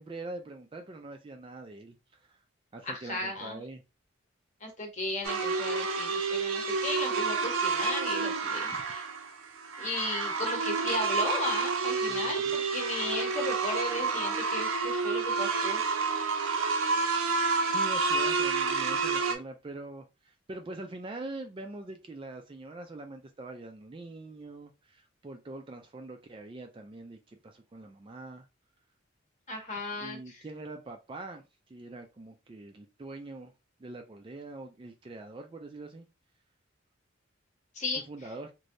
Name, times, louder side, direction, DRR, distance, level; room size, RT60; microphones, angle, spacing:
voice 1, 0.0-2.4 2.7-3.8 12.1-12.6 17.7-27.2 27.4-28.5 29.9-33.5 33.8-36.1 38.1-38.5, right 2 dB, 25° right, 0.3 m, -43 dB
voice 2, 2.8-3.6 4.6-9.1 9.8-15.8 29.5-30.5 37.7-38.0, left 2 dB, 35° left, 0.9 m, -35 dB
sound 1, 5.2-19.4, right 4 dB, 80° right, 0.6 m, -29 dB
3.1 x 2.6 x 2.5 m
head